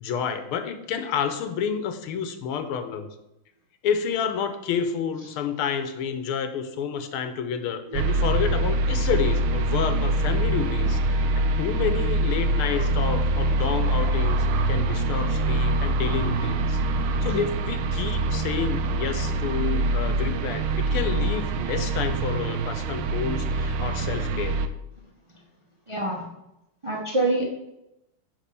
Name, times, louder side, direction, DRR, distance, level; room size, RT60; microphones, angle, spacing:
voice 1, 0.0-3.1 3.8-11.3 11.6-24.6, left 7 dB, 90° left, 8 dB, 1.7 m, -29 dB
sound 1, 7.9-24.7, right 2 dB, 75° right, 1.4 m, -24 dB
voice 2, 25.9-26.3 26.8-27.4, right 2 dB, 20° right, -1 dB, 0.8 m, -26 dB
9.6 x 3.4 x 6.8 m, 0.87 s
omnidirectional pair, 2.4 m